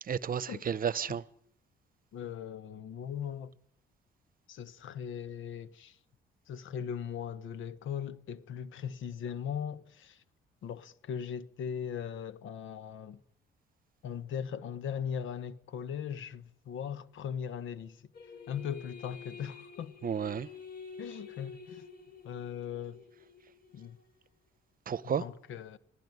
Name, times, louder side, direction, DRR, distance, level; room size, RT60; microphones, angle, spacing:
voice 1, 0.0-1.2 20.0-20.5 24.9-25.2, right 7 dB, 45° right, 0.9 m, -32 dB
voice 2, 2.1-3.6 4.5-6.0 6.5-10.2 10.6-13.2 14.0-18.1 18.5-19.9 21.0-21.8 22.2-23.0 23.7-24.0 25.2-25.8, left 8 dB, 80° left, 1.3 m, -39 dB
sound 1, 18.1-24.0, left 5 dB, 50° left, 5.5 m, -49 dB
26.0 x 17.0 x 9.6 m
cardioid pair, 90°, 20 cm